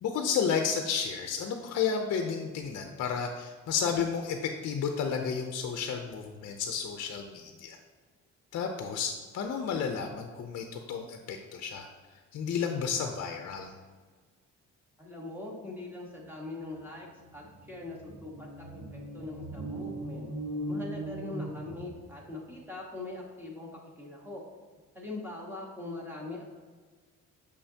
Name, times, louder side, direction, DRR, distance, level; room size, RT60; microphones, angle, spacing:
voice 1, 0.0-7.8 8.5-11.9 12.3-13.7, left 6 dB, 60° left, 4 dB, 0.6 m, -32 dB
voice 2, 15.0-17.1 17.3-20.3 20.7-23.7 24.0-24.4 24.9-26.4, left 2 dB, 5° right, -3 dB, 1.3 m, -42 dB
sound 1, 16.9-17.0 17.2-22.3, right 1 dB, 65° right, 1.6 m, -39 dB
6.4 x 5.5 x 2.8 m, 1.4 s
cardioid pair, 90°, 30 cm